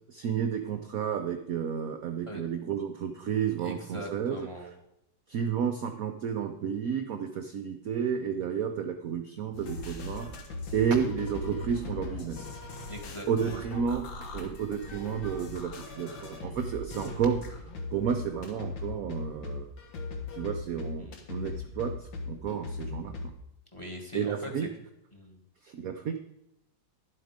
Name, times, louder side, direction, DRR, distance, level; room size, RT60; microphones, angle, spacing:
voice 1, 0.0-4.4 5.3-10.4 10.7-12.5 13.3-14.1 14.3-17.4 17.9-19.7 20.3-23.3 24.1-24.7 25.6-26.2, right 7 dB, 65° right, 7 dB, 0.9 m, -31 dB
voice 2, 3.6-4.7 12.9-13.6 21.0-21.2 23.7-24.7 25.1-25.4, equal, 15° left, 2 dB, 1.5 m, -41 dB
sound 1, 9.5-23.3, left 2 dB, 75° left, 2.1 m, -39 dB
11.0 x 7.7 x 5.0 m, 0.85 s
omnidirectional pair, 2.1 m